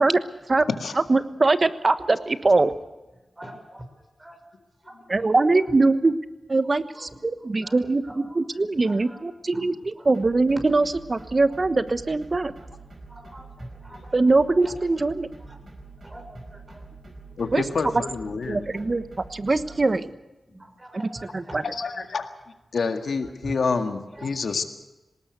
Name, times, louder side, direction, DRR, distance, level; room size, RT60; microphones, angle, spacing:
voice 1, 0.0-0.3 1.0-1.1 2.6-2.7 3.3-4.4 4.8-5.9 6.9-10.1 10.7-10.9 11.1-11.9 12.5-12.7 13.1-14.2 14.6-14.9 15.4-15.6 16.0-16.9 17.9-18.9 19.3-19.8 20.0-20.2 20.4-21.7 23.4-23.5 24.1-24.6, right 1 dB, 30° right, 5 dB, 6.2 m, -45 dB
voice 2, 1.1-2.7 5.1-6.1 6.5-7.1 7.4-8.0 8.4-9.7 10.1-12.5 14.1-15.3 17.5-17.6 18.5-19.0 19.3-20.1 21.5-21.6, right 3 dB, 45° right, 12 dB, 1.2 m, -21 dB
sound 1, 10.1-19.8, right 3 dB, 65° right, 4.8 m, -45 dB
voice 3, 17.4-18.9 21.6-22.3 22.7-24.6, left 4 dB, 75° left, 7 dB, 1.8 m, -28 dB
19.5 x 18.5 x 8.2 m, 1.1 s
cardioid pair, 40°, 0 cm